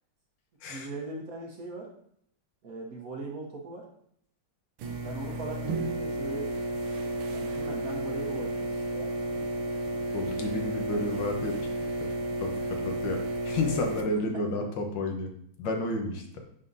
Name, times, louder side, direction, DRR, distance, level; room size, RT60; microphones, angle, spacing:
voice 1, 0.7-1.9 2.6-3.8 5.0-9.1, right 2 dB, 55° right, 0 dB, 1.1 m, -40 dB
sound 1, 4.8-14.0, right 2 dB, 90° right, 1.6 m, -32 dB
voice 2, 10.1-11.5 12.0-12.1 12.4-15.3 15.6-16.4, left 2 dB, 70° left, 3 dB, 1.5 m, -31 dB
9.7 x 3.8 x 2.6 m, 0.67 s
omnidirectional pair, 2.1 m